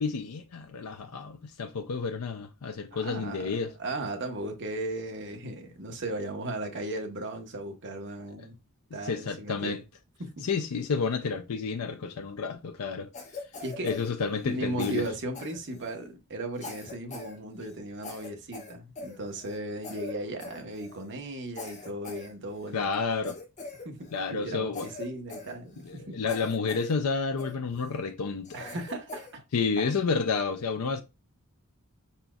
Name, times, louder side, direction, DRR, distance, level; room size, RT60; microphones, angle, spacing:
voice 1, 0.0-3.7 8.4-8.5 9.0-9.8 10.4-13.1 13.8-15.1 22.7-23.4 24.1-24.9 25.8-28.6 29.5-31.0, left 5 dB, 80° left, 0.5 m, -30 dB
voice 2, 2.9-8.5 8.9-9.8 10.2-10.5 13.6-13.9 14.4-22.9 23.8-26.2 28.5-29.4 29.8-29.9, right 1 dB, 55° right, 1.1 m, -36 dB
Cough, 13.1-14.5 14.8-16.1 16.6-17.4 17.6-17.7 18.0-19.6 19.8-20.1 20.4-21.1 21.5-22.7 23.2-24.3 24.7-26.0 26.3-26.9 27.4-27.9 28.4-29.3, left 4 dB, 35° left, 1.5 m, -43 dB
5.0 x 4.3 x 2.3 m
head